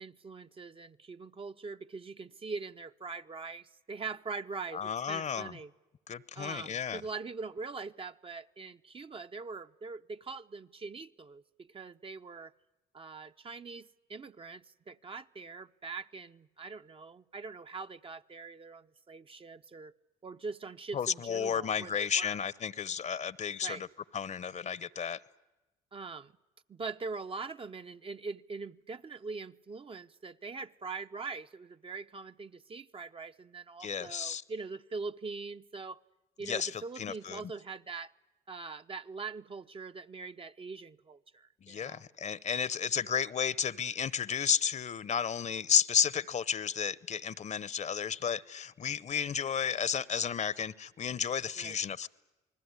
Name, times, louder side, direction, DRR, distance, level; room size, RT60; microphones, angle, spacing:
voice 1, 0.0-5.7 6.3-12.5 12.9-19.9 20.2-22.4 23.6-23.8 25.9-26.3 26.7-36.0 36.4-38.1 38.5-42.0 51.6-51.8, right 4 dB, 35° right, 0.9 m, -42 dB
voice 2, 4.7-5.5 6.1-7.0 20.9-23.9 24.1-25.2 33.8-34.4 36.4-37.5 41.6-52.1, left 7 dB, 45° left, 1.0 m, -32 dB
28.5 x 20.0 x 9.8 m
supercardioid pair, 60°, 17 cm